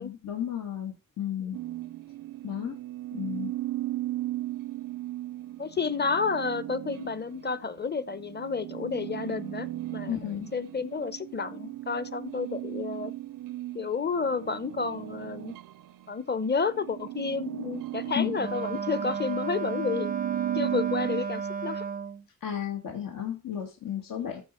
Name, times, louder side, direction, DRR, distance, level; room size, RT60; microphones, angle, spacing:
voice 1, 0.0-1.6 2.4-2.8 3.1-3.5 10.1-10.5 18.2-18.5 22.4-24.4, left 10 dB, 75° left, 2.2 m, -33 dB
sound 1, 1.5-16.1 16.5-21.2, right 15 dB, 75° right, 0.6 m, -37 dB
voice 2, 5.6-13.1 13.7-15.5 16.1-20.1 20.5-21.8, left 5 dB, 30° left, 0.9 m, -31 dB
Wind instrument woodwind instrument, 18.4-22.2, right 6 dB, 25° right, 0.5 m, -33 dB
13.5 x 4.8 x 4.5 m
cardioid pair, 85°, 34 cm